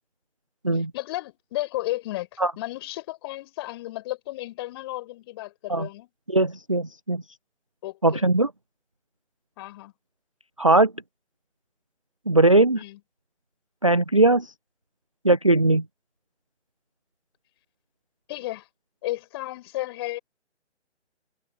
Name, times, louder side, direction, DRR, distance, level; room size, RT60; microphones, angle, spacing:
voice 1, 0.7-6.1 7.8-8.3 9.6-9.9 12.7-13.0 18.3-18.7 19.0-20.2, left 17 dB, 20° left, 5.9 m, -33 dB
voice 2, 6.3-7.2 8.0-8.5 10.6-10.9 12.3-12.8 13.8-14.5 15.2-15.8, right 2 dB, 30° right, 0.5 m, -19 dB
figure-of-eight pair, 150°, 36 cm